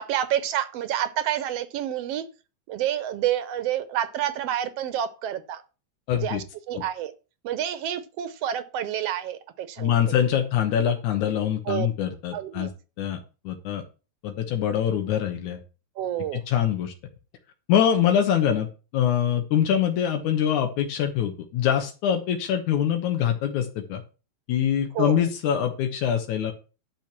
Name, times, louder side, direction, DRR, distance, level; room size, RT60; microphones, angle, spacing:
voice 1, 0.0-2.2 2.7-5.6 6.1-7.1 7.4-10.1 11.6-11.9 12.3-12.7 16.0-16.4 24.9-25.3, right 11 dB, 70° right, 1.7 m, -29 dB
voice 2, 6.1-6.4 6.7-6.8 9.8-12.7 13.0-13.2 13.4-13.8 14.2-15.6 16.3-16.9 17.7-18.7 18.9-24.0 24.5-26.5, left 9 dB, 85° left, 2.6 m, -24 dB
10.5 x 5.8 x 6.0 m
omnidirectional pair, 3.3 m